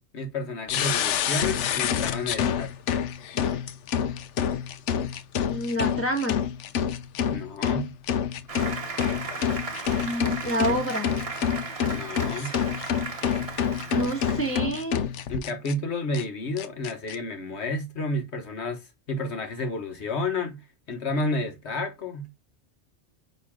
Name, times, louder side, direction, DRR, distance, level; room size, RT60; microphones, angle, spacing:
voice 1, 0.0-2.7 7.3-7.9 11.9-12.5 15.3-22.3, left 2 dB, 70° left, 1.4 m, -31 dB
sound 1, 0.7-15.7 16.1-16.2 16.6-17.2, left 8 dB, 90° left, 1.0 m, -28 dB
voice 2, 5.5-6.4 10.0-11.1 13.9-15.0, right 1 dB, 10° left, 1.2 m, -28 dB
Applause, 8.5-14.6, right 4 dB, 35° right, 0.9 m, -36 dB
9.2 x 3.2 x 3.6 m
omnidirectional pair, 1.2 m